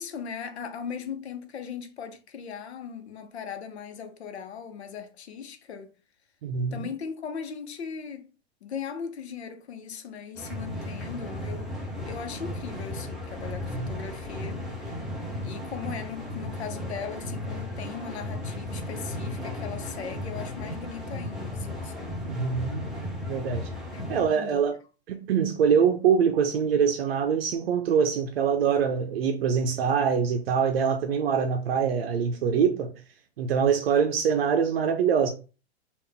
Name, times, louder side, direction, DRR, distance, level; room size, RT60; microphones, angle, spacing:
voice 1, 0.0-5.9 6.7-8.3 8.6-11.7 12.1-15.0 15.4-22.3 23.5-24.6, left 7 dB, 85° left, 0.9 m, -38 dB
voice 2, 6.4-6.9 13.7-13.9 22.3-22.8 23.3-23.7 24.1-24.7 25.1-32.9 33.4-35.3, right 7 dB, 65° right, 0.6 m, -24 dB
sound 1, 10.3-24.2, left 1 dB, ahead, 0.3 m, -35 dB
3.5 x 2.5 x 3.5 m
hypercardioid pair, 155°, 32 cm